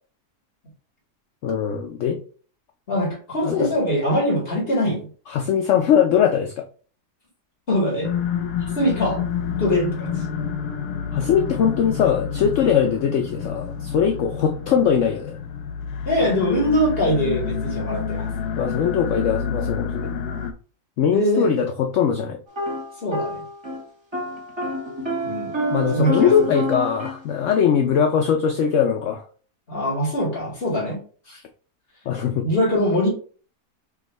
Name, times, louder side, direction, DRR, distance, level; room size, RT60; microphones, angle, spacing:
voice 1, 1.4-2.2 3.4-3.7 5.3-6.6 11.1-15.3 18.6-20.1 21.0-22.4 25.7-29.2 32.1-32.5, left 8 dB, 65° left, 4 dB, 0.8 m, -21 dB
voice 2, 2.9-5.0 7.7-8.1 8.7-9.2 9.6-10.1 16.1-18.3 21.1-21.5 23.0-23.4 25.2-25.5 25.9-26.3 29.7-31.0 31.3-31.4 32.4-33.1, equal, 35° left, -3 dB, 2.1 m, -22 dB
sound 1, 8.0-20.5, left 7 dB, 85° left, 1.2 m, -28 dB
sound 2, 22.5-23.8 24.1-27.2, equal, 20° right, 1.1 m, -28 dB
4.7 x 2.5 x 4.5 m, 0.41 s
omnidirectional pair, 1.7 m